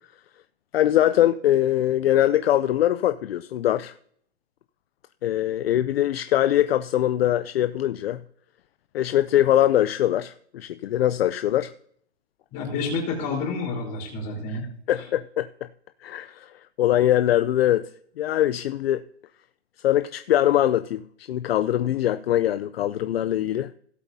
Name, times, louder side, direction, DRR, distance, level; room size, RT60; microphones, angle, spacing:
voice 1, 0.7-3.9 5.2-8.2 8.9-11.7 14.5-14.6 14.9-15.5 16.0-17.9 18.2-19.0 19.8-23.7, left 12 dB, 65° left, 0.5 m, -22 dB
voice 2, 12.5-14.6, left 4 dB, 25° left, 3.9 m, -29 dB
17.5 x 8.1 x 2.7 m
hypercardioid pair, 160°, 33 cm